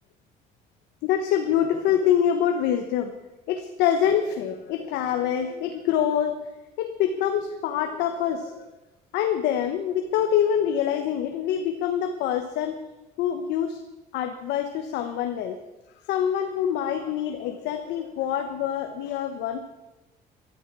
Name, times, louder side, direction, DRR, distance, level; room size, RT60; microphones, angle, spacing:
voice 1, 1.0-3.1 3.5-6.4 6.8-8.7 9.1-12.8 13.2-13.8 14.1-15.6 16.1-19.6, left 9 dB, 90° left, 6 dB, 1.2 m, -25 dB
15.5 x 12.0 x 6.1 m, 1.0 s
cardioid pair, 110°, 17 cm